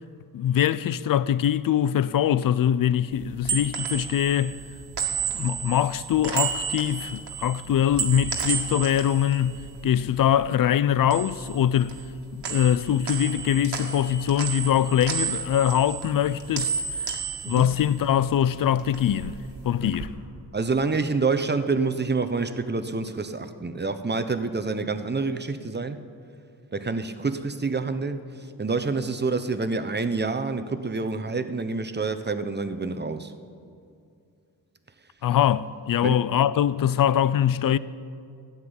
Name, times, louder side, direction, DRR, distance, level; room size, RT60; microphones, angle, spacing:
voice 1, 0.3-4.6 5.3-12.0 12.3-17.1 17.5-19.4 19.6-20.2 35.2-37.8, left 10 dB, 55° left, 0.5 m, -23 dB
sound 1, 3.1-10.5 10.8-12.2 12.4-18.4 18.7-20.1, right 7 dB, 80° right, 1.8 m, -32 dB
voice 2, 20.5-26.0 26.7-28.2 28.6-33.3 36.0-36.1, right 4 dB, 25° right, 1.0 m, -27 dB
13.5 x 7.4 x 9.8 m
cardioid pair, 60°, 41 cm